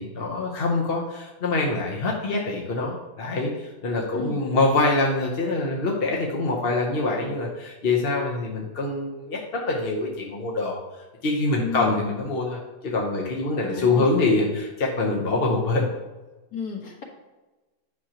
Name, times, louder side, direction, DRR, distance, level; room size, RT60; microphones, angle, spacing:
voice 1, 0.0-10.8 11.2-15.9, left 3 dB, 45° left, -1 dB, 1.0 m, -25 dB
voice 2, 11.6-11.9 13.6-14.1 16.5-17.0, left 5 dB, 75° left, -1 dB, 2.1 m, -33 dB
9.6 x 6.2 x 2.9 m, 1.2 s
omnidirectional pair, 1.7 m